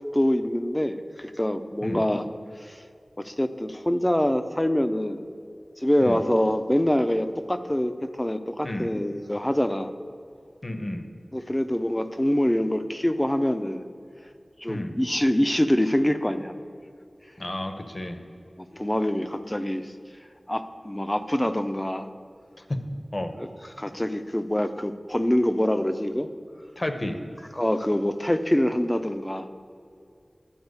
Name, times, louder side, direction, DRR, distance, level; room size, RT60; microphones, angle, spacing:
voice 1, 0.1-2.3 2.6-2.8 3.2-5.2 5.8-9.9 11.3-13.9 14.6-16.5 18.6-19.9 20.5-22.1 23.4-23.5 23.8-26.3 27.5-29.5, left 1 dB, 20° left, 9 dB, 0.6 m, -25 dB
voice 2, 10.6-11.1 14.7-15.0 17.4-18.2 22.7-22.8 23.1-23.3 26.8-27.2, left 1 dB, 45° left, 6 dB, 1.0 m, -31 dB
12.0 x 4.4 x 8.0 m, 2.5 s
wide cardioid pair, 45°, 0 cm